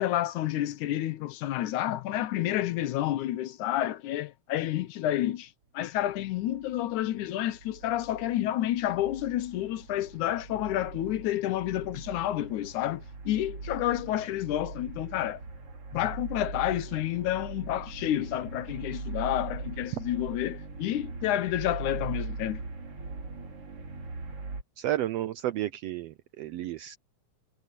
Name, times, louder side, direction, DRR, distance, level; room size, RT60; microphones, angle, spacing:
voice 1, 0.0-15.4 15.9-22.6, left 13 dB, 80° left, 2.3 m, -30 dB
sound 1, 6.0-24.6, right 3 dB, 50° right, 4.1 m, -41 dB
voice 2, 24.8-27.0, right 13 dB, 80° right, 1.5 m, -32 dB
omnidirectional pair, 3.4 m